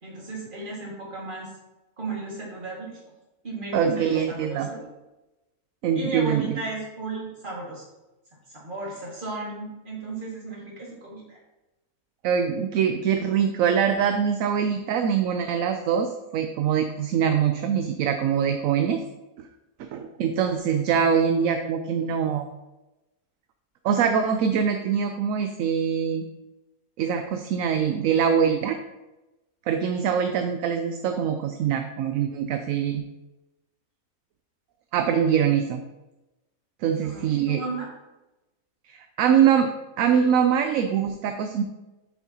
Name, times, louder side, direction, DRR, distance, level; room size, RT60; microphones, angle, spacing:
voice 1, 0.0-1.5 2.0-3.0 3.4-4.8 6.0-7.9 8.5-11.4 37.0-37.9, right 3 dB, 35° right, -4 dB, 2.1 m, -34 dB
voice 2, 3.7-4.7 5.8-6.5 12.2-19.0 19.4-19.5 19.8-22.5 23.8-26.2 27.0-28.8 29.7-33.0 34.9-35.8 36.8-37.6 38.9-39.7 40.0-41.6, right 7 dB, 70° right, 6 dB, 0.9 m, -23 dB
7.3 x 7.0 x 2.9 m, 1.0 s
omnidirectional pair, 1.6 m